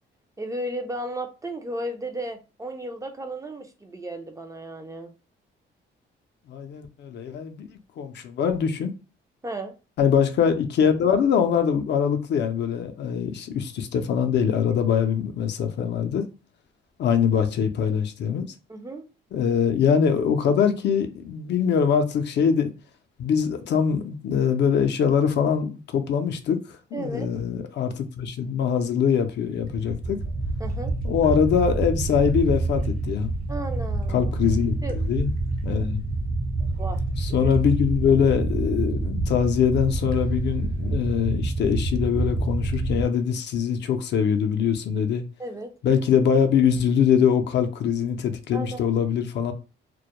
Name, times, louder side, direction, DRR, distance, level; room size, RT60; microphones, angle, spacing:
voice 1, 0.4-5.1 9.4-9.7 18.7-19.1 26.9-27.3 30.6-30.9 33.5-34.3 34.8-35.0 36.8-37.0 37.3-37.6 45.4-45.7 48.5-48.9, right 1 dB, 15° right, 0.4 m, -34 dB
voice 2, 6.5-7.7 8.0-8.9 10.0-16.2 17.0-18.5 19.3-22.7 23.2-30.2 31.0-33.3 34.1-35.3 35.6-36.0 37.2-45.2 45.8-49.5, left 7 dB, 60° left, 0.5 m, -23 dB
sound 1, 29.6-43.0, right 2 dB, 45° right, 0.8 m, -27 dB
2.2 x 2.0 x 2.8 m
cardioid pair, 90°, 20 cm